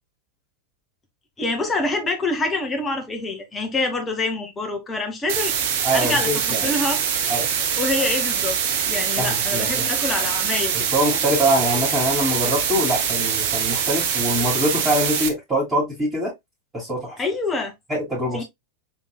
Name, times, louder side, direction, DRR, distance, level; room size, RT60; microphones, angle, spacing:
voice 1, 1.4-5.5 5.9-7.0 7.8-10.9 17.2-17.7 18.3-18.4, left 2 dB, 15° left, 1.2 m, -26 dB
sound 1, 5.3-15.3, right 7 dB, 50° right, 0.7 m, -23 dB
voice 2, 5.8-6.7 7.3-7.5 9.2-9.8 10.9-16.3 16.7-17.2 17.9-18.4, right 1 dB, 20° right, 2.6 m, -23 dB
4.5 x 3.6 x 2.2 m
figure-of-eight pair, 90°, 0 cm